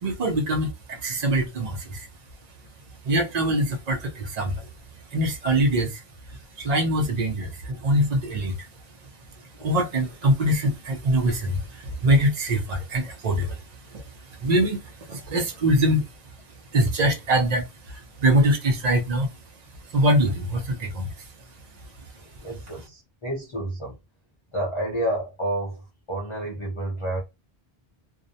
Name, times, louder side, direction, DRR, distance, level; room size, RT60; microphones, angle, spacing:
voice 1, 0.0-2.1 3.0-4.7 5.1-6.0 6.3-8.7 9.6-13.6 13.9-16.1 16.7-19.3 19.9-21.2, right 1 dB, 50° right, 0.6 m, -23 dB
voice 2, 22.4-24.0 24.5-27.2, right 1 dB, 35° left, 0.6 m, -30 dB
2.5 x 2.0 x 2.6 m
omnidirectional pair, 1.0 m